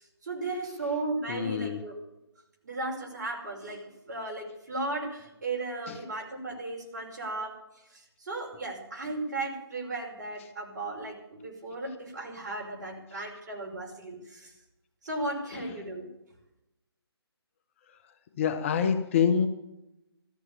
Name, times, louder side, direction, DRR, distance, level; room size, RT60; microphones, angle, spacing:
voice 1, 0.0-2.0 2.6-7.6 7.9-14.5 15.0-16.1, right 2 dB, 40° right, 1 dB, 5.6 m, -36 dB
voice 2, 1.3-1.8 5.9-6.0 15.5-15.6 17.9-18.0 18.4-19.5, left 7 dB, 30° left, 8 dB, 1.1 m, -26 dB
14.5 x 14.0 x 7.1 m, 0.90 s
figure-of-eight pair, 150°, 14 cm